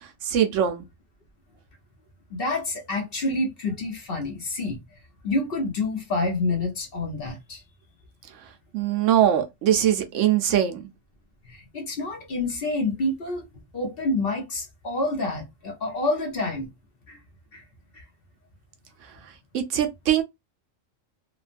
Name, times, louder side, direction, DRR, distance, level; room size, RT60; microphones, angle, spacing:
voice 1, 0.3-0.9 8.7-10.8 19.5-20.2, right 10 dB, 70° right, 0.9 m, -21 dB
voice 2, 2.3-4.8 5.2-7.6 11.4-13.5 13.7-16.7 17.1-17.2 17.5-17.6 17.9-18.0, left 2 dB, 50° left, 1.0 m, -28 dB
3.1 x 2.2 x 2.5 m
omnidirectional pair, 1.4 m